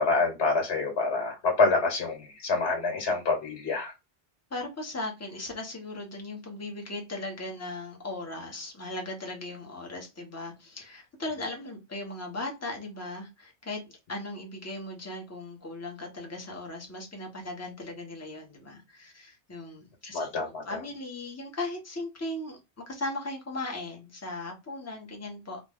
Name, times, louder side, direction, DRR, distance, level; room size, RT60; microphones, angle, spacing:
voice 1, 0.0-3.9 20.1-20.6, left 3 dB, 70° left, 3 dB, 1.3 m, -26 dB
voice 2, 4.5-22.6 22.9-25.6, left 2 dB, 15° left, 1 dB, 0.8 m, -38 dB
2.5 x 2.3 x 3.4 m, 0.24 s
omnidirectional pair, 1.1 m